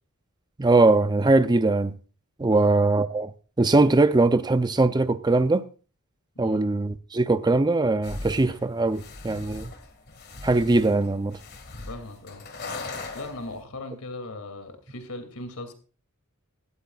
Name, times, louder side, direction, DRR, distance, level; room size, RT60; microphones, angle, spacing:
voice 1, 0.6-1.9 2.4-3.3 3.6-5.7 6.4-9.7 10.4-11.4, right 2 dB, 20° right, 0.5 m, -21 dB
sound 1, 8.0-13.6, left 3 dB, 50° left, 2.0 m, -39 dB
voice 2, 11.9-12.5 13.1-15.7, left 2 dB, 85° left, 2.6 m, -38 dB
17.0 x 13.5 x 2.4 m
head